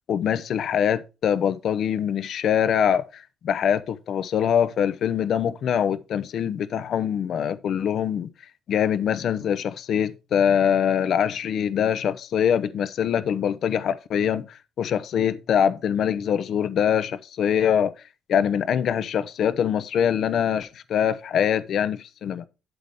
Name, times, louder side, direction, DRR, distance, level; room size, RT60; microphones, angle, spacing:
voice 1, 0.1-8.3 8.7-17.9 18.3-22.4, left 8 dB, 65° left, 0.7 m, -23 dB
8.0 x 7.7 x 3.6 m
cardioid pair, 90°, 0 cm